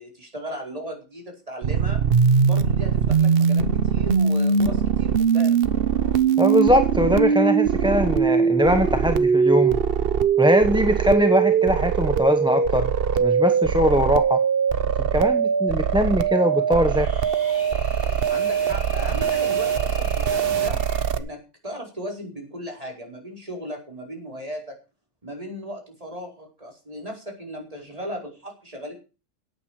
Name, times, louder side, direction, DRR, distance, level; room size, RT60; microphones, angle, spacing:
voice 1, 0.0-2.0 2.4-5.6 18.3-20.8 21.1-24.8 25.2-29.0, equal, 30° right, 1 dB, 5.0 m, -36 dB
sound 1, 1.6-21.2, right 6 dB, 50° right, 1.1 m, -21 dB
voice 2, 6.4-9.8 10.4-12.9 13.2-14.4 15.0-17.1, equal, 5° right, 7 dB, 1.0 m, -21 dB
sound 2, 16.7-21.1, left 2 dB, 40° left, 3.5 m, -41 dB
17.5 x 9.0 x 5.0 m, 0.32 s
omnidirectional pair, 1.3 m